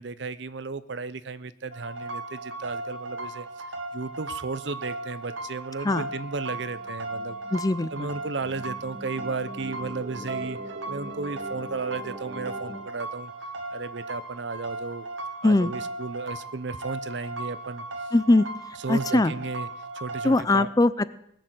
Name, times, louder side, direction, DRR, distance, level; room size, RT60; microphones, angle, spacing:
voice 1, 0.0-3.7 3.9-7.4 7.9-10.6 10.9-13.3 13.7-15.1 15.4-18.1 18.8-19.7 19.9-20.7, right 4 dB, 65° right, 15 dB, 0.7 m, -34 dB
sound 1, 1.7-20.4, right 2 dB, 85° right, 1.5 m, -37 dB
sound 2, 6.7-12.8, right 1 dB, 30° right, 1.9 m, -42 dB
voice 2, 7.5-8.1 15.4-15.7 18.1-18.5 18.9-19.3 20.2-21.0, left 2 dB, 20° left, 15 dB, 0.4 m, -21 dB
19.5 x 6.8 x 7.8 m, 0.74 s
head